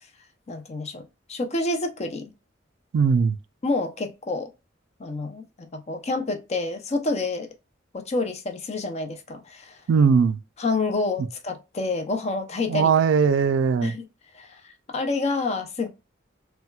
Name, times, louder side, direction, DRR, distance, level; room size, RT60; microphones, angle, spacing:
voice 1, 0.5-2.3 3.6-4.5 5.0-7.5 7.9-9.8 10.6-12.9 13.8-14.0 14.3-15.9, left 3 dB, 35° left, 0.6 m, -28 dB
voice 2, 2.9-3.4 9.9-10.4 12.7-13.9, right 6 dB, 75° right, 0.3 m, -19 dB
4.2 x 2.2 x 2.2 m
head